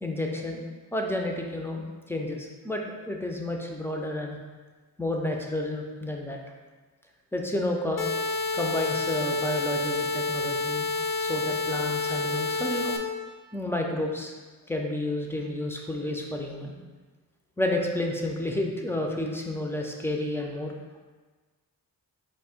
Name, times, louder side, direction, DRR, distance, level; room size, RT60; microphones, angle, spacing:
voice 1, 0.0-0.6 0.9-4.4 5.0-6.4 7.3-8.1 8.5-10.9 11.2-12.9 13.5-14.3 14.7-16.8 17.6-20.7, left 1 dB, 5° left, 1 dB, 0.3 m, -30 dB
sound 1, 8.0-13.0, left 3 dB, 60° left, 0.6 m, -29 dB
4.3 x 2.6 x 4.8 m, 1.4 s
wide cardioid pair, 170°, 38 cm